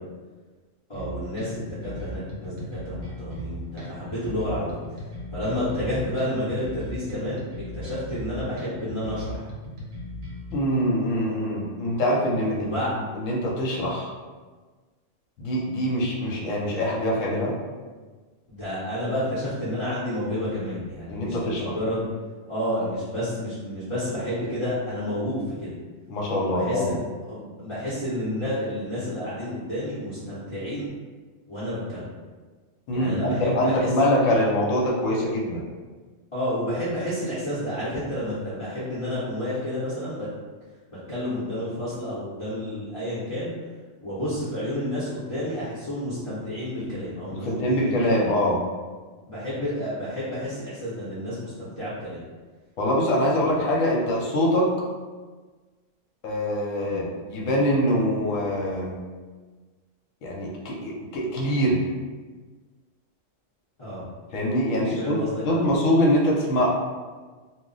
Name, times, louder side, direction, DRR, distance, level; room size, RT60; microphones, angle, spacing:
voice 1, 0.9-4.8 5.3-7.4 7.7-9.5 12.4-12.9 18.5-22.1 22.5-25.7 26.5-30.9 31.5-32.1 32.9-34.1 36.3-40.3 40.9-43.5 44.0-48.3 49.3-52.2 53.4-53.6 56.8-57.1 63.8-64.1 64.8-65.7, left 1 dB, 30° left, -12 dB, 0.7 m, -30 dB
sound 1, 0.9-10.5, equal, 50° right, 0.8 m, -37 dB
voice 2, 10.5-14.1 15.4-17.5 21.1-21.8 26.1-26.9 32.9-35.6 47.3-48.6 52.8-54.7 56.2-59.0 60.2-61.8 64.3-65.2 65.4-66.7, equal, 75° left, -3 dB, 1.0 m, -24 dB
2.3 x 2.1 x 3.8 m, 1.4 s
omnidirectional pair, 1.4 m